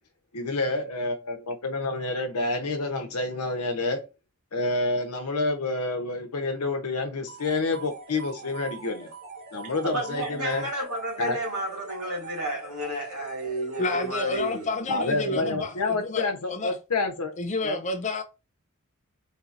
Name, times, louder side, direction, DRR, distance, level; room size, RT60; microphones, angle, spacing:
voice 1, 0.3-4.0 4.5-9.1 9.5-10.7 11.2-11.4 14.9-17.4 17.6-17.8, left 3 dB, 90° left, 0.8 m, -28 dB
sound 1, 7.3-15.0, right 5 dB, 50° right, 2.0 m, -44 dB
voice 2, 9.8-14.7 15.2-15.6, right 1 dB, 85° right, 2.1 m, -31 dB
voice 3, 13.8-16.7 17.4-18.2, left 3 dB, 35° left, 0.5 m, -30 dB
4.0 x 2.7 x 2.5 m
head